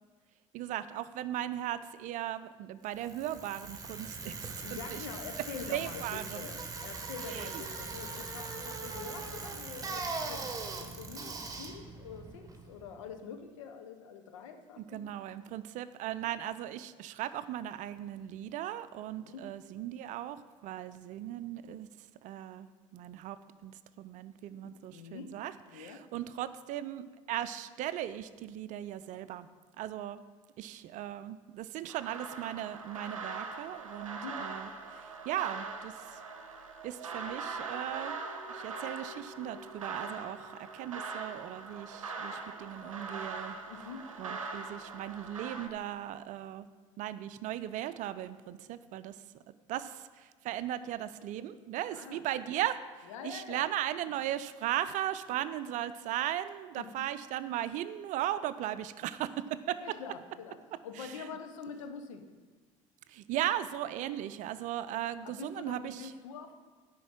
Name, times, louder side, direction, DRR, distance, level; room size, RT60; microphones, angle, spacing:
voice 1, 0.5-5.1 5.7-6.5 7.3-7.5 14.8-21.9 22.2-29.5 29.8-30.2 30.6-36.2 36.8-38.2 38.5-43.6 44.2-46.7 47.0-49.2 49.7-52.8 53.2-60.0 61.0-61.3 63.1-66.1, right 12 dB, 50° right, 14 dB, 0.5 m, -37 dB
Bicycle, 2.9-13.0, right 3 dB, 20° right, 1.4 m, -41 dB
voice 2, 4.6-10.5 10.8-15.0 19.2-19.5 24.6-25.3 25.7-26.0 34.1-34.4 43.7-44.1 51.9-52.2 53.1-53.7 56.8-56.9 59.8-60.6 60.8-62.2 65.2-66.5, left 6 dB, 70° left, 7 dB, 1.0 m, -45 dB
sound 1, 31.9-45.7, right 4 dB, 85° right, 0.7 m, -42 dB
10.0 x 4.5 x 7.4 m, 1.4 s
figure-of-eight pair, 65°, 17 cm